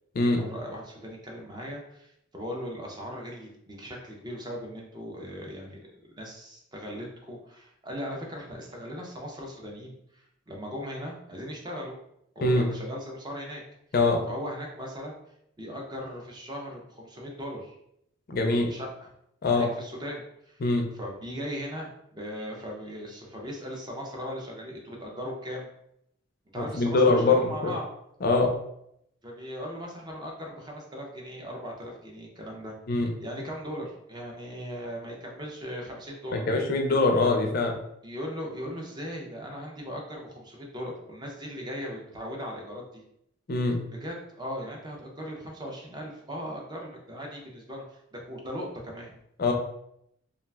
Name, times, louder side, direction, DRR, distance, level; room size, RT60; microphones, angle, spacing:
voice 1, 0.2-12.0 12.4-13.6 14.3-15.2 15.6-17.8 18.5-19.1 19.4-20.6 20.9-25.7 26.5-27.9 29.2-32.8 33.2-36.4 37.1-37.2 38.0-43.0 43.9-49.1, equal, 20° right, -1 dB, 0.4 m, -38 dB
voice 2, 13.9-14.3 18.3-18.7 19.4-19.7 20.6-20.9 26.6-27.7 28.2-28.5 32.9-33.1 36.3-37.7 43.5-43.8 49.4-49.5, left 3 dB, 45° left, 3 dB, 0.4 m, -23 dB
2.4 x 2.2 x 3.3 m, 0.76 s
head